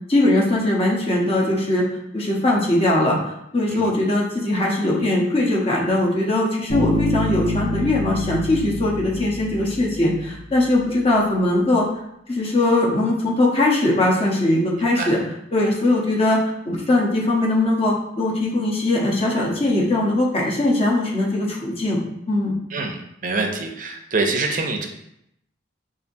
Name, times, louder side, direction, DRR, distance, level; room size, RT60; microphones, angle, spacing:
voice 1, 0.1-1.8 2.1-3.2 3.5-11.8 12.3-15.2 15.5-22.0 22.3-22.5, left 1 dB, 30° left, -2 dB, 0.8 m, -20 dB
Bass guitar, 6.7-10.4, left 2 dB, 80° left, 0.7 m, -27 dB
voice 2, 14.8-15.1 22.7-23.0 23.2-24.9, right 3 dB, 45° right, 2 dB, 0.6 m, -25 dB
5.5 x 2.6 x 2.6 m, 0.79 s
head